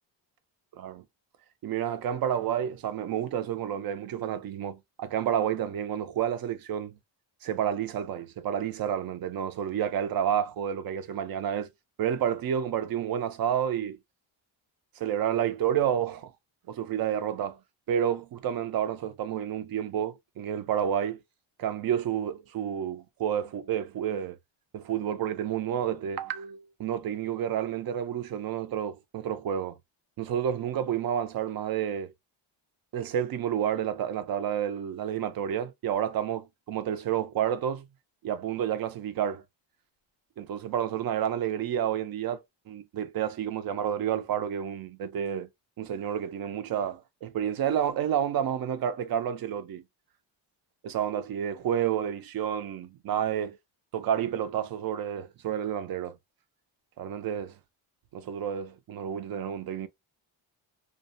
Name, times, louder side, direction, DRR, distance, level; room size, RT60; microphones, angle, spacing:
voice 1, 1.6-7.0 7.4-11.7 12.0-14.0 15.0-16.3 16.7-17.6 17.9-21.2 21.6-24.4 24.7-29.8 30.2-32.1 32.9-37.9 38.2-39.4 40.4-45.5 45.8-49.8 50.8-53.6 53.9-56.2 57.0-57.6 58.1-59.9, right 9 dB, 50° right, 0.5 m, -30 dB
2.5 x 2.0 x 2.5 m
cardioid pair, 140°, 48 cm